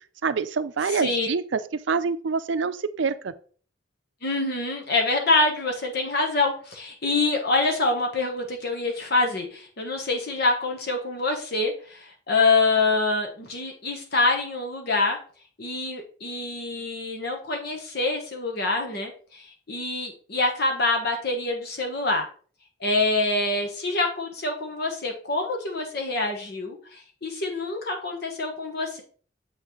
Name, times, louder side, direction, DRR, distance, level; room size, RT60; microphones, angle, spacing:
voice 1, 0.2-3.3, right 5 dB, 65° right, 13 dB, 0.5 m, -26 dB
voice 2, 0.9-1.3 4.2-15.2 15.6-22.3 22.8-29.0, left 3 dB, 55° left, 3 dB, 1.1 m, -26 dB
7.6 x 5.8 x 3.1 m, 0.43 s
head